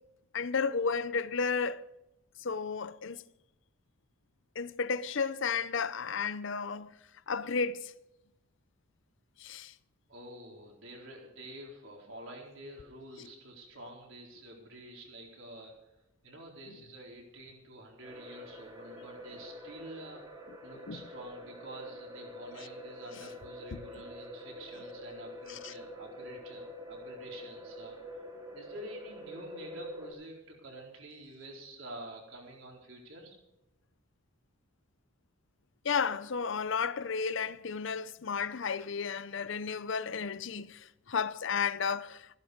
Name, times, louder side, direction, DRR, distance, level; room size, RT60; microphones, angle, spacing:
voice 1, 0.3-1.8 2.4-3.2 4.6-6.9 7.3-7.9 9.4-9.7 13.2-13.3 20.9-21.0 23.7-23.8 25.5-25.7 35.8-42.3, left 5 dB, 60° left, 0.6 m, -33 dB
voice 2, 10.1-15.7 16.2-28.2 28.5-33.4, right 1 dB, 65° right, 4.3 m, -48 dB
sound 1, 18.0-30.1, equal, 20° right, 2.9 m, -46 dB
15.5 x 11.5 x 5.1 m
head